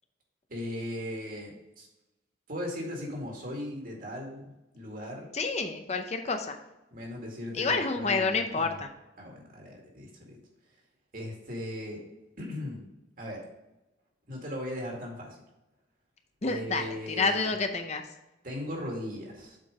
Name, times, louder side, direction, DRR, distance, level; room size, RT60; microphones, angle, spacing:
voice 1, 0.5-1.9 2.5-5.3 6.9-8.8 9.2-10.4 11.1-12.0 12.4-12.9 13.2-13.4 14.3-15.4 16.4-17.4 18.4-19.6, left 1 dB, 50° right, -1 dB, 2.1 m, -38 dB
voice 2, 5.3-6.6 7.6-8.9 16.4-16.9 17.2-18.0, left 4 dB, 35° left, 6 dB, 0.6 m, -28 dB
7.5 x 4.5 x 4.9 m, 0.98 s
head